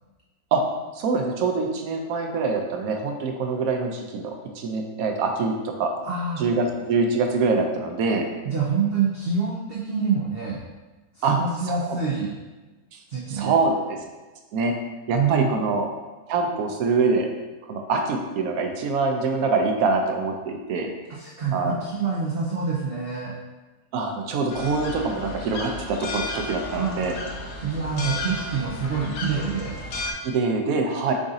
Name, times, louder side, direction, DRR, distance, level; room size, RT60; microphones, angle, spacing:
voice 1, 1.0-5.9 6.4-8.3 11.2-11.4 11.7-12.0 13.3-14.0 14.5-14.8 15.1-15.9 16.3-17.3 17.7-20.9 21.5-21.8 23.9-27.1 30.2-31.1, right 4 dB, 70° right, 3 dB, 1.0 m, -24 dB
voice 2, 6.0-6.4 8.4-10.6 11.1-12.3 13.1-13.6 15.1-15.6 21.1-23.3 26.6-27.1 27.6-29.8, right 5 dB, 85° right, -3 dB, 0.5 m, -26 dB
sound 1, 24.5-30.1, left 2 dB, 65° left, 0.9 m, -33 dB
4.8 x 3.7 x 2.6 m, 1.2 s
omnidirectional pair, 1.7 m